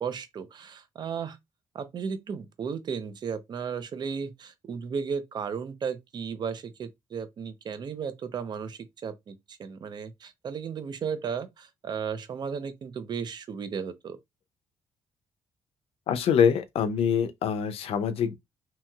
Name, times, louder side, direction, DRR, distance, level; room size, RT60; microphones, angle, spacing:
voice 1, 0.0-1.4 1.7-14.2, right 6 dB, 45° right, 0.5 m, -35 dB
voice 2, 16.1-18.4, left 7 dB, 75° left, 0.5 m, -24 dB
2.9 x 2.8 x 2.3 m
cardioid pair, 130°, 10 cm